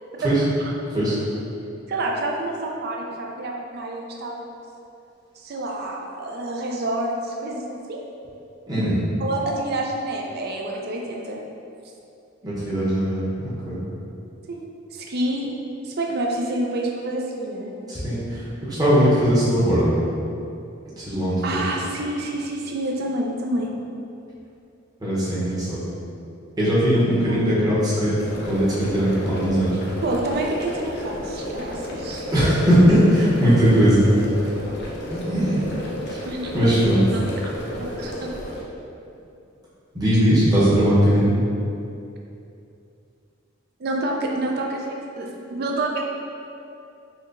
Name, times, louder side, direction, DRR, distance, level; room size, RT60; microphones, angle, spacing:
voice 1, 1.9-4.5 5.4-8.0 9.2-11.4 14.5-14.6 14.9-15.5 15.8-17.7 21.4-23.7 27.3-27.4 30.0-32.2 36.2-36.5 37.1-37.2 37.8-38.3 43.8-46.0, right 1 dB, 55° right, 0 dB, 0.4 m, -28 dB
voice 2, 8.7-9.0 12.4-13.8 17.9-18.4 18.7-19.9 21.0-21.4 25.0-25.8 26.6-28.1 28.5-29.7 32.3-34.0 35.1-35.6 36.1-36.2 36.5-37.0 39.9-41.2, equal, 20° right, -10 dB, 0.9 m, -19 dB
sound 1, 28.2-38.6, left 1 dB, 60° left, 0.6 m, -32 dB
4.2 x 2.8 x 2.5 m, 2.7 s
head